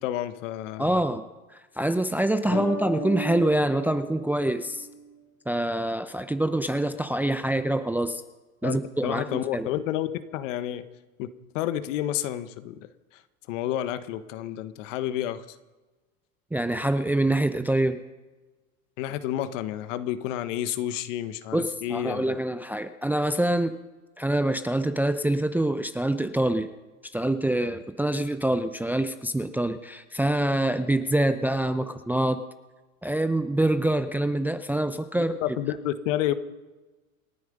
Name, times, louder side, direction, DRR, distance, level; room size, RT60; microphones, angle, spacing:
voice 1, 0.0-1.0 2.4-2.7 8.6-8.8 9.0-10.9 11.2-11.3 11.5-12.9 13.1-13.2 13.5-15.4 19.0-22.4 35.2-36.3, left 12 dB, 60° left, 12 dB, 1.3 m, -30 dB
voice 2, 0.8-1.2 1.8-4.9 5.5-8.2 8.6-9.7 16.5-18.0 21.5-23.7 24.2-26.7 27.1-32.4 33.0-35.4, right 1 dB, 5° right, 10 dB, 0.6 m, -25 dB
sound 1, 2.5-5.2, equal, 80° left, 3.2 m, -36 dB
27.5 x 9.5 x 5.3 m, 1.2 s
hypercardioid pair, 100°, 42 cm